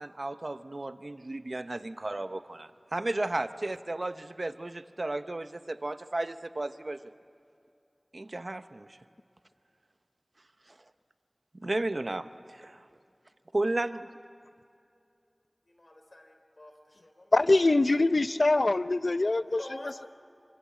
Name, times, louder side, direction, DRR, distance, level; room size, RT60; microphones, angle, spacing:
voice 1, 0.0-7.1 8.1-9.0 10.7-10.8 11.5-12.9 13.5-14.1, right 2 dB, 70° right, 11 dB, 0.8 m, -34 dB
voice 2, 15.7-17.3 17.6-17.7 19.6-20.1, left 1 dB, 75° left, 5 dB, 3.4 m, -47 dB
voice 3, 17.3-19.6, left 2 dB, 90° left, 13 dB, 0.5 m, -23 dB
26.5 x 25.0 x 7.5 m, 2.6 s
wide cardioid pair, 45°, 0 cm